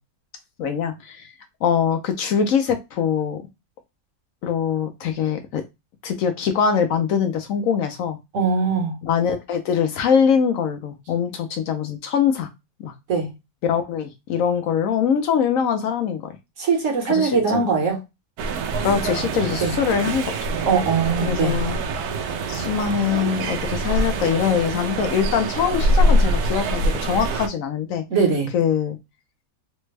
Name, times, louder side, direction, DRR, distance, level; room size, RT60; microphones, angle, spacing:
voice 1, 0.6-1.3 1.6-3.4 4.4-5.6 6.0-8.2 9.0-12.5 12.8-12.9 13.6-16.3 17.1-17.6 18.8-20.3 21.2-21.8 22.5-28.0 28.5-29.0, left 7 dB, 70° left, 0.9 m, -23 dB
voice 2, 8.3-8.9 13.1-13.3 16.6-18.0 19.6-19.7 20.6-21.6 28.1-28.5, right 5 dB, 60° right, 1.3 m, -21 dB
sound 1, 18.4-27.5, right 1 dB, 80° right, 1.1 m, -24 dB
3.3 x 2.1 x 3.2 m
omnidirectional pair, 1.6 m